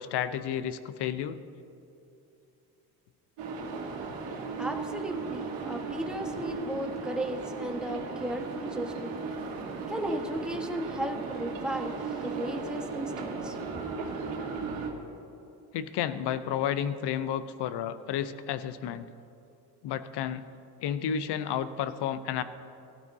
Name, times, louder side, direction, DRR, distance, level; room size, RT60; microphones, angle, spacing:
voice 1, 0.0-1.4 15.7-19.1 19.8-20.4 20.8-22.4, left 9 dB, 60° left, 13 dB, 0.8 m, -31 dB
sound 1, 3.4-14.9, right 4 dB, 70° right, 2.0 m, -36 dB
voice 2, 4.6-9.2 9.9-13.8, right 1 dB, ahead, 2 dB, 1.4 m, -35 dB
17.5 x 12.5 x 2.8 m, 2.8 s
supercardioid pair, 65°, 46 cm